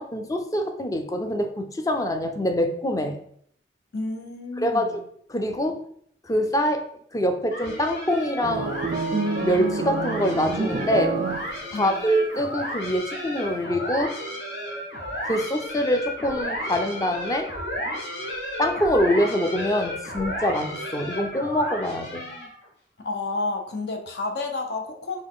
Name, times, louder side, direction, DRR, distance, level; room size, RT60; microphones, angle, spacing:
voice 1, 0.0-3.2 4.6-5.0 5.3-5.8 6.2-8.7 9.4-11.2 11.7-14.1 15.2-17.5 18.6-22.2, equal, 20° left, 6 dB, 0.4 m, -25 dB
voice 2, 3.9-5.0 11.7-12.0 23.0-25.2, left 3 dB, 70° left, 4 dB, 0.7 m, -30 dB
sound 1, 7.5-22.6, equal, 85° left, 1.1 m, -33 dB
sound 2, 8.4-11.9, right 4 dB, 40° right, 0.4 m, -28 dB
4.1 x 3.1 x 3.7 m, 0.65 s
head